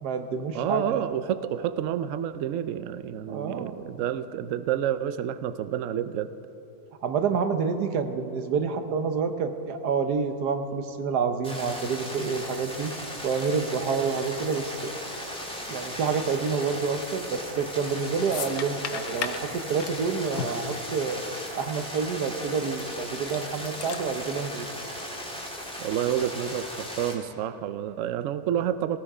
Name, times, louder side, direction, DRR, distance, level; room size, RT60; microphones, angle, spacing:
voice 1, 0.0-1.1 3.3-3.8 7.0-12.9 13.2-14.9 15.7-21.2 21.5-24.7, right 5 dB, 85° right, 8 dB, 1.5 m, -28 dB
voice 2, 0.5-6.3 25.8-29.0, right 10 dB, 65° right, 13 dB, 0.8 m, -29 dB
sound 1, 11.4-27.1, equal, 5° left, 2.0 m, -37 dB
sound 2, 17.7-17.9 18.3-21.3 21.6-21.7 22.4-22.8 23.2-24.3, left 8 dB, 70° left, 1.3 m, -36 dB
18.0 x 15.0 x 4.9 m, 2.9 s
omnidirectional pair, 1.7 m